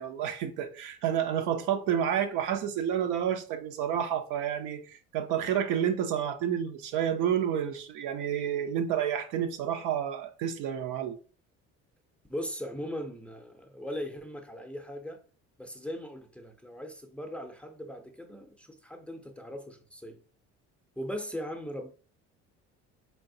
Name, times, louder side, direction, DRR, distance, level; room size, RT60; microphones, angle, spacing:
voice 1, 0.0-11.2, right 9 dB, 80° right, 0.7 m, -30 dB
voice 2, 12.3-15.2 15.6-20.2 21.0-21.9, equal, 5° left, 0.5 m, -39 dB
3.9 x 3.4 x 2.6 m
supercardioid pair, 100°, 31 cm